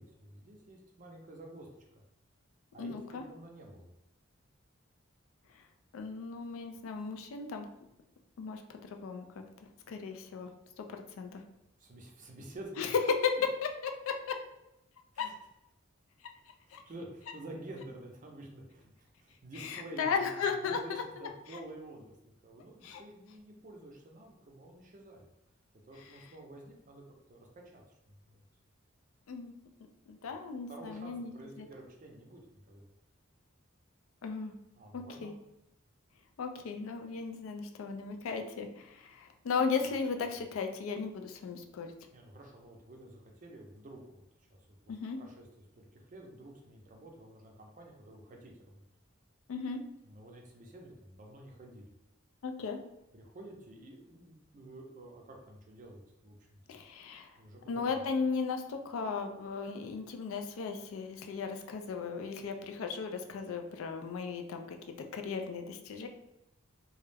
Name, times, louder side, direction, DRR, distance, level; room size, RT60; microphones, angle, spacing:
voice 1, 0.0-2.0 2.7-3.9 11.8-12.9 15.1-15.3 16.7-22.1 22.4-25.3 25.9-28.4 30.7-32.9 34.8-35.3 42.1-44.2 44.5-48.8 50.0-51.9 53.1-56.8 57.4-58.0, right 1 dB, 40° right, 1 dB, 0.5 m, -50 dB
voice 2, 2.8-3.2 5.9-7.7 8.4-8.6 8.9-9.3 9.9-10.5 10.8-11.4 12.8-13.3 13.8-14.4 15.2-15.3 16.7-16.8 19.6-21.0 22.8-23.0 29.3-29.5 30.1-31.3 31.6-31.7 34.2-34.5 34.9-35.3 36.4-41.9 44.9-45.2 49.5-49.8 52.4-52.8 56.7-57.3 57.7-64.8 65.1-66.1, left 5 dB, 80° left, 5 dB, 0.4 m, -36 dB
2.3 x 2.0 x 3.2 m, 0.87 s
head